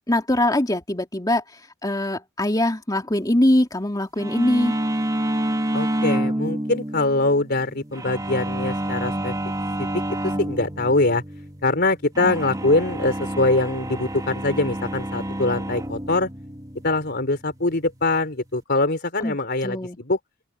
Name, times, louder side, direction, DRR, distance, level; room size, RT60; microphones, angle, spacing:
voice 1, 0.1-1.4 1.8-4.7 19.2-19.4 19.6-20.0, left 1 dB, 15° left, 2.7 m, -22 dB
sound 1, 4.2-18.6, right 1 dB, 15° right, 2.9 m, -29 dB
voice 2, 5.7-9.4 9.8-9.9 10.2-11.2 11.6-16.3 16.8-20.2, left 2 dB, 50° left, 3.8 m, -23 dB
open air
head